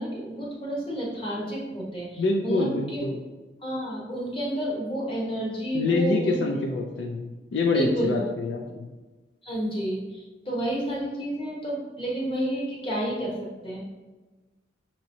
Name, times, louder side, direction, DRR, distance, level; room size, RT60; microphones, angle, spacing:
voice 1, 0.0-3.1 3.6-6.5 7.7-8.2 9.4-13.4 13.6-13.8, equal, 30° left, -4 dB, 1.0 m, -30 dB
voice 2, 2.2-3.2 5.7-8.9, left 3 dB, 70° left, 2 dB, 0.4 m, -26 dB
6.0 x 2.9 x 2.7 m, 1.2 s
head